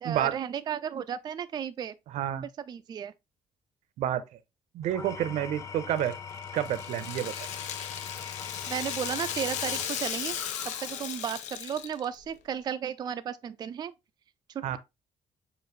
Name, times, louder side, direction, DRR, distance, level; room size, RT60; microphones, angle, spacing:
voice 1, 0.0-1.9 2.7-3.1 8.7-13.9 14.5-14.8, right 8 dB, 35° right, 0.3 m, -34 dB
voice 2, 2.1-2.5 4.0-4.2 4.7-6.2 6.5-7.4 14.6-14.8, right 11 dB, 75° right, 0.6 m, -29 dB
Engine / Tools, 4.8-11.3, left 6 dB, 25° left, 0.5 m, -42 dB
Rattle (instrument), 6.0-12.2, left 9 dB, 80° left, 0.6 m, -36 dB
6.8 x 2.6 x 3.0 m
cardioid pair, 140°, 12 cm